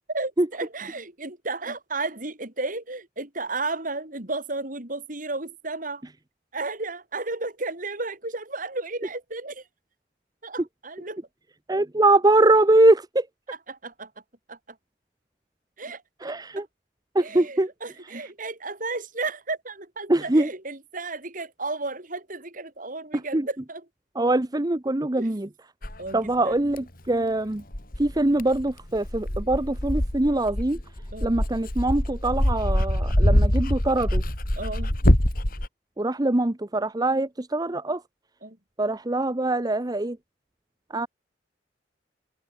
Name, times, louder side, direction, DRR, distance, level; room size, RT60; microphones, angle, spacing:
voice 1, 0.1-6.0 6.5-9.6 10.4-11.2 13.5-14.1 14.5-14.8 15.8-16.0 16.6-16.7 17.2-23.9 25.2-25.3 26.0-26.6 31.1-31.3 34.6-35.0 38.4-38.6, right 3 dB, 50° right, 5.3 m, -33 dB
voice 2, 11.7-13.3 16.2-16.7 17.1-17.7 20.1-20.5 23.3-23.5 24.2-25.5 26.1-27.6 28.0-30.8 31.2-34.2 36.0-38.0 38.8-40.2 40.9-41.1, right 2 dB, 20° right, 0.8 m, -23 dB
Dog, 25.8-26.0 26.7-26.8 27.7-35.7, equal, 55° left, 3.6 m, -24 dB
open air
head